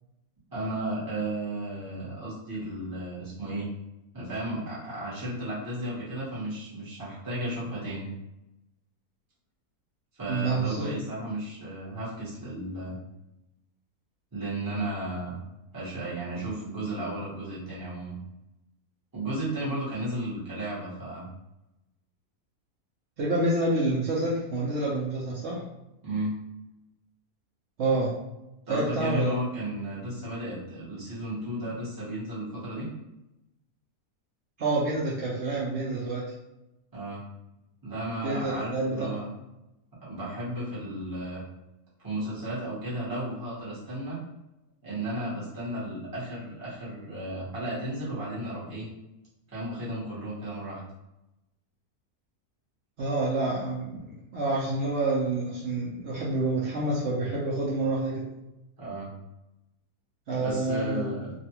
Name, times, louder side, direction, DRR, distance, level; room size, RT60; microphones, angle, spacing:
voice 1, 0.5-3.7 4.1-8.1 10.1-13.0 14.3-15.4 15.7-18.2 19.1-21.3 26.0-26.4 28.7-32.9 36.9-37.2 37.8-39.3 40.0-41.4 42.0-44.2 44.8-48.9 49.5-50.8 58.8-59.1 60.3-61.3, right 1 dB, 15° right, -9 dB, 0.9 m, -34 dB
voice 2, 10.3-11.0 23.2-25.6 27.8-28.1 28.7-29.4 34.6-36.3 38.2-39.1 53.0-54.0 54.3-58.2 60.3-61.3, right 2 dB, 65° right, -5 dB, 0.7 m, -28 dB
2.6 x 2.3 x 2.8 m, 0.93 s
omnidirectional pair, 1.6 m